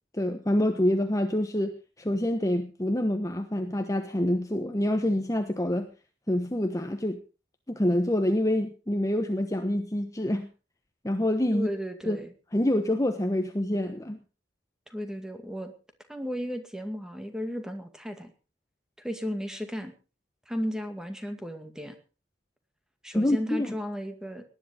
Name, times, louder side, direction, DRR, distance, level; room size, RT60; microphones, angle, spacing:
voice 1, 0.1-5.9 6.3-7.2 7.7-10.5 11.0-11.7 12.1-12.2 12.5-14.2 23.1-23.7, left 1 dB, 20° left, 6 dB, 1.1 m, -26 dB
voice 2, 11.5-12.3 14.9-15.7 16.1-18.3 19.0-19.9 20.5-22.0 23.0-24.4, equal, 5° right, 7 dB, 2.2 m, -34 dB
19.0 x 10.5 x 5.0 m, 0.35 s
head